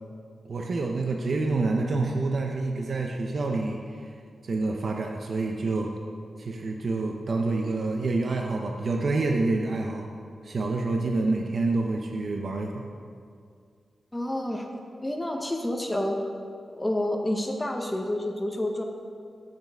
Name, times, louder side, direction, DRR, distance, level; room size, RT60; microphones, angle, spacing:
voice 1, 0.4-4.1 4.4-5.9 6.4-10.1 10.4-12.8, right 3 dB, 55° right, 2 dB, 0.7 m, -27 dB
voice 2, 14.1-14.7 15.0-16.2 16.7-18.8, left 1 dB, 15° left, 2 dB, 0.8 m, -29 dB
16.0 x 6.7 x 3.5 m, 2.3 s
wide cardioid pair, 100°, 0 cm